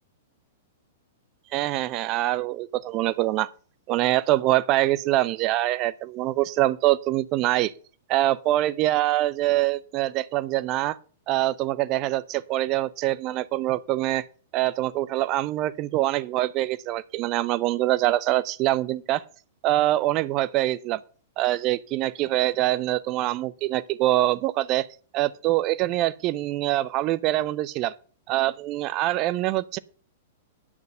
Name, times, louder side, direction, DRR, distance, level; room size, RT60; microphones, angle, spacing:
voice 1, 1.5-3.5 3.9-7.7 8.1-11.0 11.3-14.3 14.5-19.2 19.6-21.0 21.4-24.9 25.1-27.9 28.3-29.8, right 16 dB, 35° right, 0.7 m, -24 dB
10.0 x 6.6 x 6.3 m
figure-of-eight pair, 100°, 0 cm